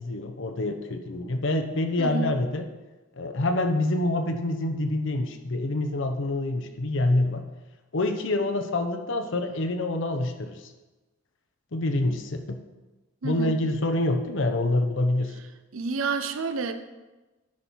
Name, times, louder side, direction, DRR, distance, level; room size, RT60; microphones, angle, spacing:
voice 1, 0.0-2.7 3.2-7.5 7.9-10.6 11.7-12.6 13.2-15.3, left 2 dB, 60° left, 7 dB, 0.8 m, -26 dB
voice 2, 2.0-2.3 13.2-13.6 15.7-16.7, right 4 dB, 75° right, 9 dB, 0.7 m, -29 dB
10.5 x 5.4 x 4.6 m, 1.1 s
head